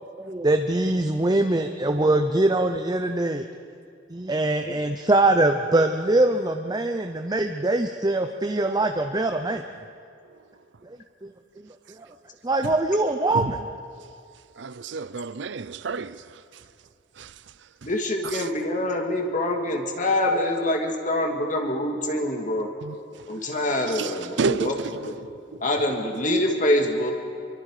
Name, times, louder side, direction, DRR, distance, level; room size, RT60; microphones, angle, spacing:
voice 1, 0.2-3.4 4.1-9.6 11.2-11.3 12.0-12.1 12.4-13.6, right 2 dB, 20° right, 0.7 m, -23 dB
voice 2, 14.6-16.4 17.2-17.3 17.8-17.9 18.2-18.5 22.8-23.0 23.6-25.6, right 4 dB, 70° right, 0.6 m, -31 dB
voice 3, 17.8-22.7 23.3-24.7 25.0-25.1 25.6-27.1, left 1 dB, 40° left, 2.4 m, -25 dB
26.5 x 24.0 x 5.0 m
head